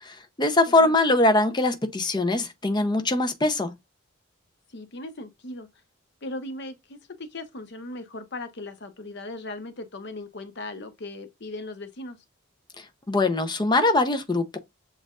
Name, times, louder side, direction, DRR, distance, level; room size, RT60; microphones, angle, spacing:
voice 1, 0.0-3.7 12.8-14.6, left 2 dB, 20° left, 0.6 m, -22 dB
voice 2, 0.7-1.0 4.7-5.7 6.2-12.2, left 2 dB, 55° left, 0.8 m, -38 dB
7.4 x 2.5 x 2.3 m
head